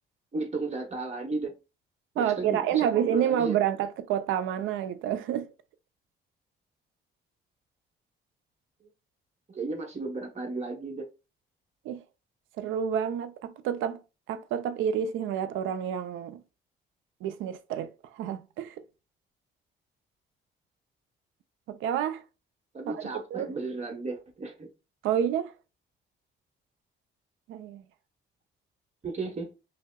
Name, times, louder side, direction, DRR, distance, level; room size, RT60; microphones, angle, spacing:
voice 1, 0.3-1.5 2.2-3.6 8.8-8.9 9.5-11.1 22.7-24.7 29.0-29.5, right 3 dB, 35° right, 1.0 m, -34 dB
voice 2, 2.2-5.5 11.8-12.0 12.6-14.0 14.3-16.4 17.2-18.8 21.7-22.2 22.9-23.0 23.3-23.5 25.0-25.5 27.5-27.8, right 9 dB, 90° right, 0.4 m, -29 dB
5.3 x 2.0 x 2.2 m
cardioid pair, 90°, 20 cm